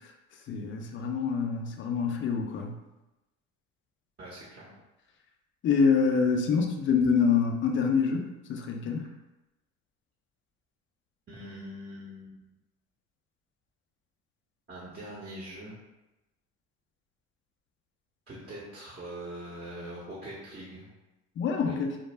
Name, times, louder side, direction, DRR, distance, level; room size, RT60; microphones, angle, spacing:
voice 1, 0.5-2.7 5.6-9.0 21.4-22.0, left 5 dB, 35° left, 3 dB, 0.5 m, -26 dB
voice 2, 4.2-4.7 11.3-12.4 14.7-15.7 18.3-20.9 21.5-21.8, right 1 dB, 25° right, -6 dB, 0.8 m, -42 dB
2.2 x 2.0 x 3.2 m, 0.99 s
hypercardioid pair, 75°, 36 cm